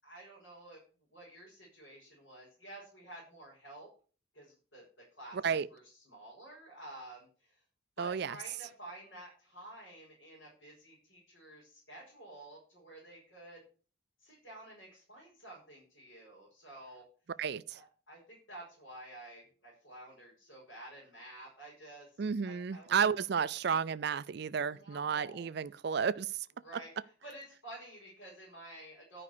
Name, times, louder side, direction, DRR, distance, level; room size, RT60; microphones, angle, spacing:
voice 1, 0.0-0.8 1.1-3.9 4.3-4.8 5.2-7.6 8.0-13.6 14.2-17.0 17.7-23.0 24.6-25.5 26.6-29.2, right 1 dB, 75° left, 5.0 m, -51 dB
voice 2, 5.3-5.7 8.0-8.4 17.4-17.8 22.2-26.5, right 6 dB, 55° right, 0.4 m, -32 dB
11.0 x 5.3 x 6.7 m
head